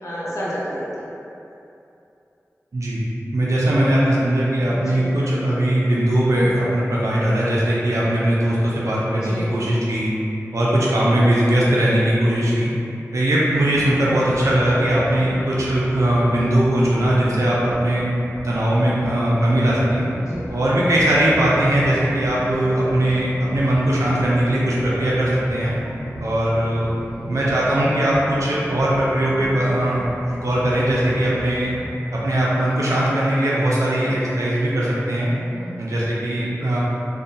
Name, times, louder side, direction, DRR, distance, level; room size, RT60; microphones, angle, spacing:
voice 1, 0.0-1.0 4.9-5.1 9.2-9.4 20.2-20.4 35.5-35.8, equal, 70° left, -9 dB, 0.7 m, -30 dB
voice 2, 2.7-3.0 3.3-10.1 10.5-12.7 13.1-18.0 18.4-20.1 20.5-25.7 26.2-26.9 27.3-31.7 32.2-35.3 35.8-36.8, right 1 dB, 65° right, -7 dB, 0.4 m, -20 dB
sound 1, 13.4-32.0, equal, 20° left, 1.2 m, -36 dB
2.3 x 2.1 x 2.6 m, 2.8 s
wide cardioid pair, 50°, 6 cm